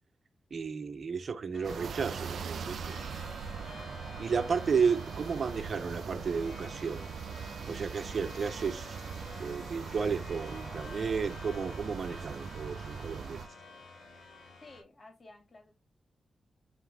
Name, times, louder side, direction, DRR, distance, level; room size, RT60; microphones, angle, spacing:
voice 1, 0.5-3.0 4.2-7.1 7.7-9.0 9.4-13.4, right 5 dB, 65° right, 1.1 m, -33 dB
sound 1, 1.5-14.8, left 3 dB, 80° left, 3.4 m, -49 dB
sound 2, 1.6-13.5, right 6 dB, 80° right, 0.6 m, -41 dB
voice 2, 4.1-4.5 14.6-15.7, left 2 dB, 50° left, 2.8 m, -54 dB
8.6 x 3.4 x 3.6 m
cardioid pair, 50°, 0 cm